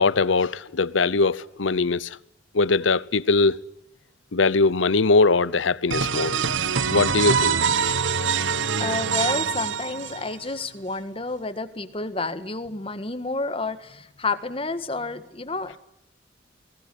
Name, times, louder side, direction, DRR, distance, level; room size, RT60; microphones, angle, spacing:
voice 1, 0.0-2.2 2.5-3.6 4.3-6.4 6.9-7.6 7.8-8.0, left 3 dB, 85° left, 0.8 m, -21 dB
sound 1, 5.9-10.5, right 6 dB, 85° right, 1.1 m, -24 dB
voice 2, 8.8-15.8, left 3 dB, 30° left, 1.6 m, -30 dB
22.0 x 19.0 x 10.0 m
head